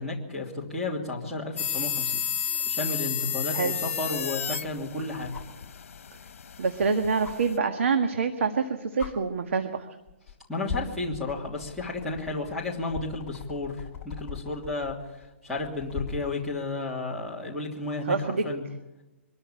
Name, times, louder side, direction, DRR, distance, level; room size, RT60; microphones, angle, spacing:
voice 1, 0.0-2.2 2.6-5.3 10.5-13.8 14.0-15.0 15.4-18.6, left 2 dB, ahead, -3 dB, 2.9 m, -32 dB
sound 1, 1.6-7.6, left 8 dB, 75° left, 1.4 m, -32 dB
sound 2, 5.3-5.6 7.2-7.4 8.5-8.6 9.0-9.1 10.0-10.3 10.7-16.3 18.0-18.1, left 6 dB, 15° left, 3.5 m, -39 dB
voice 2, 6.6-9.9 18.1-18.5, right 5 dB, 70° right, 6 dB, 1.8 m, -26 dB
24.0 x 13.5 x 8.6 m, 1.0 s
hypercardioid pair, 165°, 7 cm